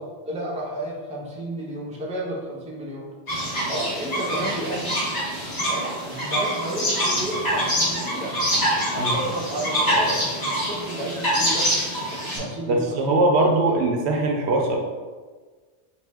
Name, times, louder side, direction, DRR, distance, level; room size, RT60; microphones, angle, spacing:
voice 1, 0.2-3.1 3.7-5.0 5.7-8.3 8.9-11.7 12.1-13.5, right 1 dB, 10° right, -4 dB, 0.5 m, -32 dB
sound 1, 3.3-12.4, equal, 70° left, 1.9 m, -25 dB
voice 2, 12.4-14.8, right 2 dB, 70° right, 2 dB, 0.8 m, -21 dB
4.3 x 2.7 x 3.3 m, 1.4 s
omnidirectional pair, 1.2 m